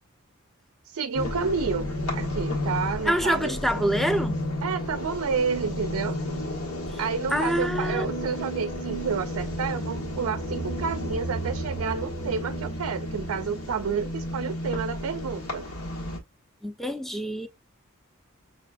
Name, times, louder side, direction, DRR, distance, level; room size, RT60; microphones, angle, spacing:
voice 1, 0.9-3.5 4.6-6.2 7.0-15.6, right 6 dB, 70° right, 0.4 m, -30 dB
sound 1, 1.1-16.2, left 1 dB, 90° left, 1.3 m, -32 dB
voice 2, 3.1-4.4 7.3-8.1 16.6-17.5, equal, ahead, 0.4 m, -26 dB
5.7 x 2.5 x 2.2 m
head